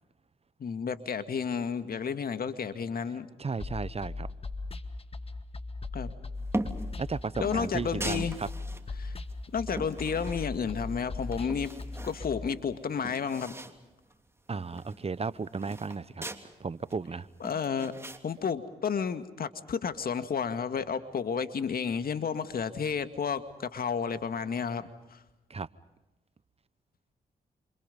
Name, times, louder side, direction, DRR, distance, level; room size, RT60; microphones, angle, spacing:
voice 1, 0.6-3.3 5.9-6.1 7.4-8.4 9.0-9.2 9.5-11.7 12.0-13.5 17.4-17.9 18.2-25.2, left 6 dB, 60° left, 10 dB, 2.1 m, -31 dB
voice 2, 3.4-4.3 7.0-8.5 14.5-16.2 16.6-17.3 25.5-25.7, right 4 dB, 35° right, 18 dB, 1.0 m, -34 dB
sound 1, 3.6-12.5, left 3 dB, 35° left, 2.0 m, -38 dB
sound 2, 6.5-6.9 7.4-8.8 9.3-10.8 11.2-12.2 12.6-12.7 12.9-13.8 14.1-14.2 14.5-16.4 16.9-18.2, right 1 dB, 15° right, 3.1 m, -39 dB
28.0 x 28.0 x 5.4 m, 1.0 s
supercardioid pair, 50°, 17 cm